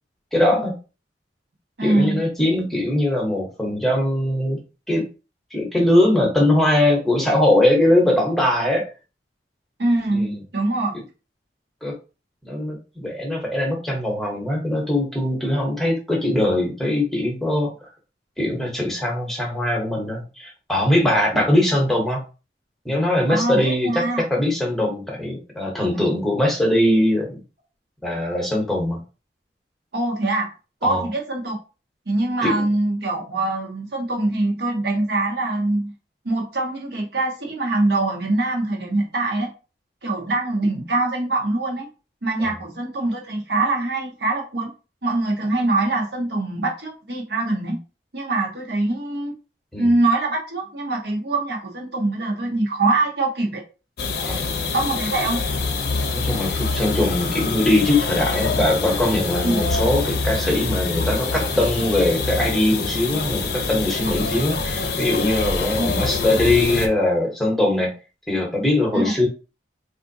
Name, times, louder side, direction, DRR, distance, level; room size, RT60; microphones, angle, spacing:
voice 1, 0.3-0.7 1.8-4.6 4.9-5.0 5.5-8.8 10.1-10.4 11.8-11.9 12.4-17.7 18.4-22.2 22.8-24.0 24.3-27.4 28.0-29.0 30.8-31.1 32.4-32.5 42.4-42.5 49.7-49.9 54.2-54.5 56.1-67.9 68.3-69.3, left 1 dB, ahead, -2 dB, 0.8 m, -21 dB
voice 2, 1.8-2.2 9.8-11.0 23.3-24.2 25.9-26.0 29.9-30.5 30.8-31.6 32.1-35.9 36.2-39.5 40.0-41.9 42.2-44.7 45.0-47.8 48.1-49.3 49.8-53.6 54.7-55.4 59.4-59.6 65.8-65.9 68.9-69.1, right 2 dB, 65° right, 0 dB, 0.9 m, -23 dB
sound 1, 54.0-66.9, left 4 dB, 60° left, 0.6 m, -25 dB
3.6 x 2.5 x 2.6 m, 0.32 s
head